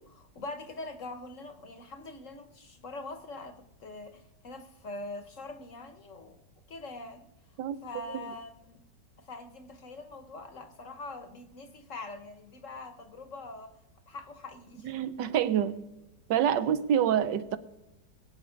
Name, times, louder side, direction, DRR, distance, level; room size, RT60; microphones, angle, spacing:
voice 1, 0.0-6.4 6.7-7.2 7.8-8.8 9.2-13.7 14.1-14.9, left 2 dB, 50° left, 9 dB, 1.1 m, -43 dB
voice 2, 14.8-15.8 16.3-17.6, right 9 dB, 75° right, 12 dB, 1.4 m, -27 dB
22.0 x 8.9 x 5.1 m, 0.95 s
omnidirectional pair, 2.0 m